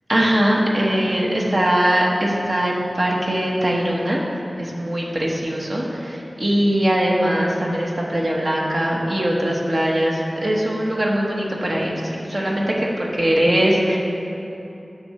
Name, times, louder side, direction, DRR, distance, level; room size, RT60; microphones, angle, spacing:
voice 1, 0.1-4.2 4.6-14.0, equal, 50° right, -3 dB, 1.3 m, -21 dB
11.0 x 6.8 x 3.2 m, 2.9 s
wide cardioid pair, 75°, 0 cm